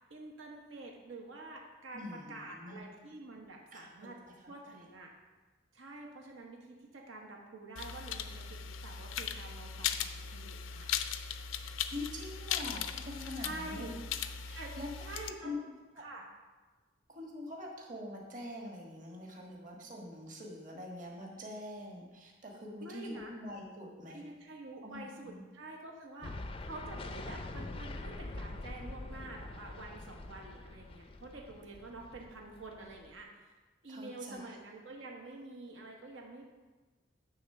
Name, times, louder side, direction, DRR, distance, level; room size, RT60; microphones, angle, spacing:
voice 1, 0.1-4.2 4.5-5.1 5.7-11.0 13.4-13.9 14.5-14.7 15.0-15.6 16.0-16.3 22.8-23.3 24.1-33.5 33.8-36.4, right 2 dB, 85° right, 0 dB, 1.2 m, -48 dB
voice 2, 1.9-2.9 3.7-3.9 4.2-4.3 11.9-14.0 14.4-14.9 15.4-15.6 17.1-24.2 24.8-25.4 33.9-34.6, left 1 dB, 40° right, -1 dB, 1.4 m, -44 dB
sound 1, 7.8-15.3, left 8 dB, 85° left, 0.5 m, -38 dB
sound 2, 26.2-33.2, left 2 dB, 25° left, 0.4 m, -45 dB
9.9 x 3.6 x 6.7 m, 1.3 s
head